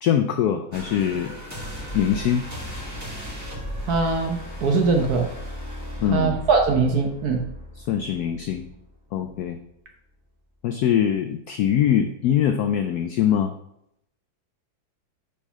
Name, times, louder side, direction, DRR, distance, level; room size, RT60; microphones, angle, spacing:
voice 1, 0.0-1.4 1.9-2.5 6.0-6.4 7.8-8.6 9.1-9.6 10.6-13.5, left 9 dB, 80° left, 7 dB, 0.8 m, -22 dB
sound 1, 0.7-8.9 9.3-9.5, equal, 10° right, 1.5 m, -36 dB
voice 2, 3.9-5.3 6.1-7.4, right 4 dB, 60° right, 3 dB, 1.2 m, -21 dB
5.4 x 4.8 x 5.5 m, 0.77 s
omnidirectional pair, 2.2 m